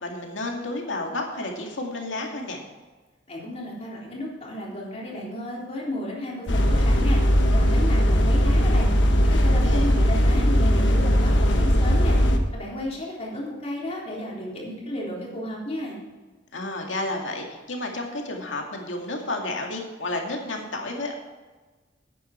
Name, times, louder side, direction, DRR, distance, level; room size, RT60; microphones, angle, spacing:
voice 1, 0.0-2.6 9.4-9.9 16.5-21.1, left 2 dB, 90° left, 1 dB, 2.2 m, -31 dB
voice 2, 3.3-7.2 7.5-8.9 9.2-12.2 12.5-16.0, left 1 dB, 35° left, -4 dB, 3.6 m, -33 dB
sound 1, 6.5-12.4, equal, 70° left, 1.3 m, -19 dB
11.0 x 9.2 x 4.5 m, 1.3 s
head